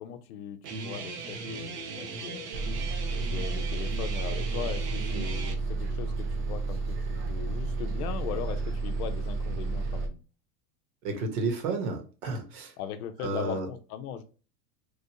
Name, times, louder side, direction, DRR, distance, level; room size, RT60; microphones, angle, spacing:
voice 1, 0.0-2.5 3.3-10.2 12.8-14.2, left 9 dB, 65° left, 8 dB, 0.7 m, -39 dB
Guitar, 0.6-5.5, right 4 dB, 75° right, 0.8 m, -38 dB
Bus, 2.5-10.1, right 3 dB, 35° right, 0.8 m, -31 dB
voice 2, 11.0-12.7 13.2-13.7, right 3 dB, 55° right, 4 dB, 1.1 m, -31 dB
3.2 x 2.5 x 2.8 m, 0.35 s
hypercardioid pair, 100°, 48 cm